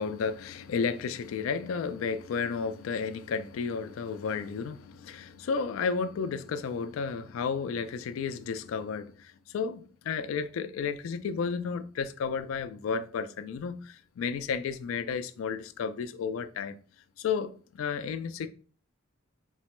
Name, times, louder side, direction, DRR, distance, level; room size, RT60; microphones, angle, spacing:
voice 1, 0.0-16.8 17.2-18.5, left 5 dB, 90° left, 0.3 m, -32 dB
3.9 x 2.1 x 3.0 m
head